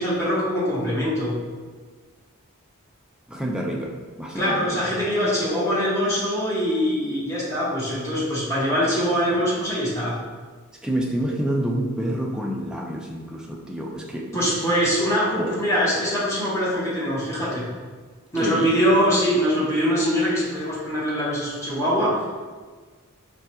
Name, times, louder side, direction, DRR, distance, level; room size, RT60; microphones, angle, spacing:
voice 1, 0.0-1.3 4.3-10.1 14.3-17.6 18.3-22.3, equal, 15° left, -8 dB, 1.0 m, -23 dB
voice 2, 3.3-4.8 10.8-14.3 15.4-15.5 18.4-18.7, right 1 dB, 5° right, -1 dB, 0.3 m, -28 dB
4.6 x 2.2 x 2.8 m, 1.5 s
head